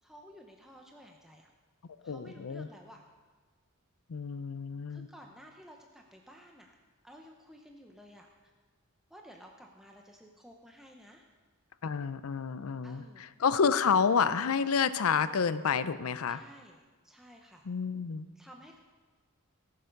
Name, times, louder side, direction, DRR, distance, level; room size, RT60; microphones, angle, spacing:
voice 1, 0.0-1.5 2.0-3.0 4.9-6.7 7.0-8.5 9.1-11.2 12.8-13.2 16.3-16.8 17.0-17.7 18.4-18.8, equal, ahead, 1 dB, 0.7 m, -53 dB
voice 2, 2.0-2.7 4.1-5.1 11.8-16.4 17.6-18.3, left 6 dB, 75° left, 14 dB, 0.5 m, -29 dB
18.0 x 6.8 x 5.3 m, 1.4 s
head